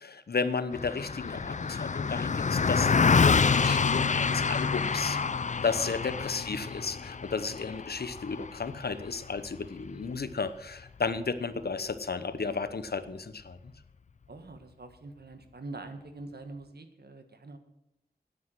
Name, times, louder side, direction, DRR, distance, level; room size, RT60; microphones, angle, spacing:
voice 1, 0.0-13.7, left 4 dB, 70° left, 12 dB, 0.9 m, -33 dB
Car passing by, 0.7-10.3, left 5 dB, 45° left, 0.4 m, -27 dB
voice 2, 14.3-17.6, right 3 dB, 75° right, 7 dB, 1.6 m, -44 dB
9.6 x 9.3 x 7.6 m, 0.91 s
wide cardioid pair, 65°, 17 cm